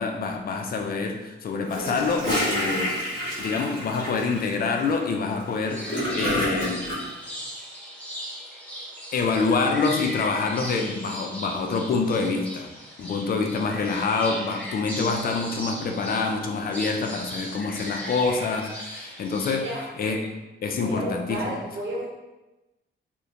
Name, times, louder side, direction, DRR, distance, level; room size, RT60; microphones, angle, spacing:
voice 1, 0.0-2.9 3.4-6.9 9.1-12.7 13.0-19.7 20.0-20.2 20.6-21.5, left 4 dB, 45° left, 3 dB, 0.4 m, -26 dB
Gurgling / Toilet flush, 1.6-7.0, equal, 20° left, 1.2 m, -29 dB
sound 1, 5.7-19.5, equal, 5° left, 0.6 m, -37 dB
voice 2, 19.5-19.9 20.7-22.1, right 1 dB, 55° right, -5 dB, 0.9 m, -32 dB
2.8 x 2.1 x 2.5 m, 1.0 s
cardioid pair, 110°, 21 cm